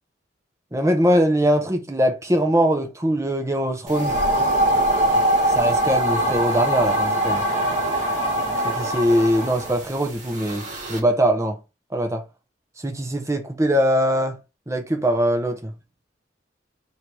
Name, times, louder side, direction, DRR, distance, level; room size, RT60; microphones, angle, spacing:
voice 1, 0.7-4.1 5.5-7.4 8.6-11.6 11.9-12.2 12.8-14.4 14.7-15.7, equal, 15° right, 0.8 m, -21 dB
sound 1, 3.9-11.0, right 1 dB, 40° right, 1.5 m, -22 dB
3.3 x 2.8 x 4.6 m
head